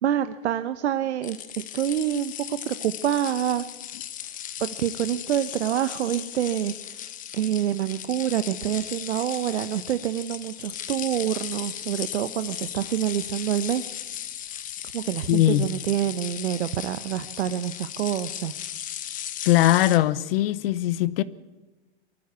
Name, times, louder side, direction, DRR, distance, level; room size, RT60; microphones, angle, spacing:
voice 1, 0.0-3.6 4.6-13.9 14.9-18.5, right 11 dB, 85° right, 0.9 m, -27 dB
sound 1, 1.2-20.0, left 11 dB, 25° left, 1.0 m, -37 dB
voice 2, 15.3-15.7 19.4-21.2, left 14 dB, 60° left, 0.8 m, -20 dB
23.5 x 14.0 x 8.2 m
hypercardioid pair, 135°, 33 cm